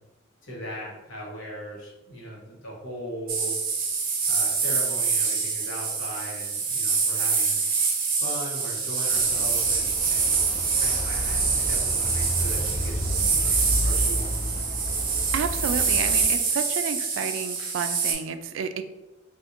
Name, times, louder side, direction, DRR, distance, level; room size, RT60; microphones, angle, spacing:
voice 1, 0.4-3.6 4.3-7.6 8.2-10.4 10.8-14.5, equal, 80° left, -4 dB, 1.1 m, -39 dB
sound 1, 3.3-18.1, right 5 dB, 50° right, 0.6 m, -25 dB
sound 2, 9.1-16.2, equal, 35° left, 0.9 m, -31 dB
voice 2, 15.3-18.8, right 6 dB, 80° right, 10 dB, 0.3 m, -30 dB
4.2 x 2.5 x 2.5 m, 1.1 s
head